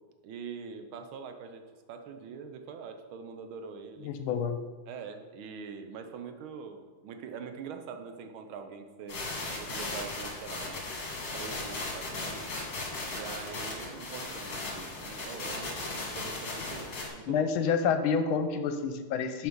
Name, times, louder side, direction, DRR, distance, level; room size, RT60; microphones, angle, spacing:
voice 1, 0.2-4.1 4.9-9.2 9.6-10.8 11.3-12.5 13.1-17.5, right 6 dB, 80° right, 6 dB, 1.6 m, -43 dB
voice 2, 4.0-4.6 17.3-19.5, left 6 dB, 85° left, 9 dB, 1.5 m, -28 dB
sound 1, 9.1-17.1, left 2 dB, 60° left, 2.3 m, -37 dB
7.6 x 5.2 x 5.3 m, 1.4 s
omnidirectional pair, 2.3 m